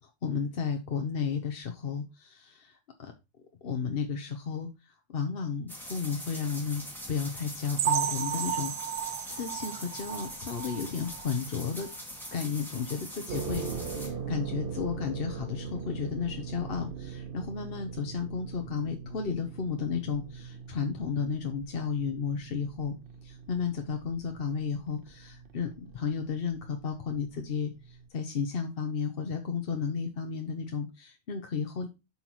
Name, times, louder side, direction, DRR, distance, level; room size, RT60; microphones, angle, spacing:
voice 1, 0.2-2.7 3.0-3.1 3.6-4.7 5.1-6.8 7.1-11.9 12.3-13.7 13.9-22.9 23.2-31.9, left 6 dB, 50° left, 5 dB, 1.0 m, -33 dB
sound 1, 5.7-14.1, equal, ahead, 2.2 m, -43 dB
sound 2, 7.8-11.4 11.8-12.0 12.3-12.4 12.9-13.0, right 10 dB, 85° right, 1.0 m, -33 dB
sound 3, 13.3-28.1, right 6 dB, 50° right, 1.1 m, -41 dB
8.0 x 5.6 x 3.0 m, 0.25 s
omnidirectional pair, 1.3 m